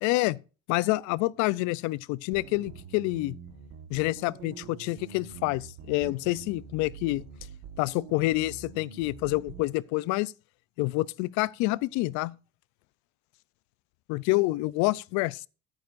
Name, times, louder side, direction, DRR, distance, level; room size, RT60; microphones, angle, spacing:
voice 1, 0.0-0.4 0.7-3.3 3.9-7.3 7.8-10.3 10.8-12.3 14.1-15.5, left 20 dB, 75° left, 0.6 m, -27 dB
sound 1, 2.3-9.7, right 7 dB, 70° right, 1.5 m, -46 dB
14.5 x 9.1 x 2.6 m
cardioid pair, 110°, 29 cm